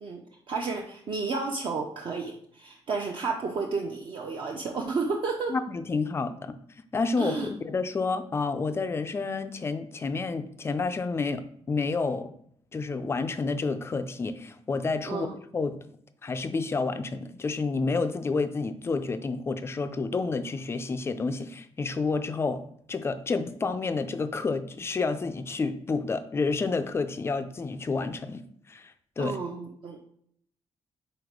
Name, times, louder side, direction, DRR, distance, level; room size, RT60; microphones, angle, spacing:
voice 1, 0.0-5.6 7.2-7.5 15.1-15.3 29.2-30.1, right 4 dB, 45° right, 0 dB, 0.6 m, -32 dB
voice 2, 5.5-6.6 6.9-12.3 12.7-15.3 15.5-15.8 16.2-22.6 22.9-28.4 28.7-29.4, left 4 dB, 20° left, 10 dB, 0.4 m, -29 dB
4.8 x 4.3 x 5.0 m, 0.66 s
wide cardioid pair, 180°, 12 cm